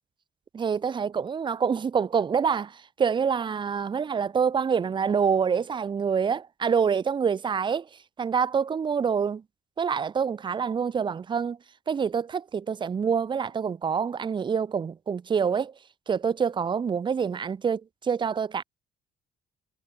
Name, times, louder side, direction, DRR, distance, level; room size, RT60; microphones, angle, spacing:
voice 1, 0.5-7.9 8.2-9.4 9.8-11.6 11.9-15.7 16.1-18.6, right 6 dB, 30° right, 1.0 m, -26 dB
cardioid pair, 145°, 17 cm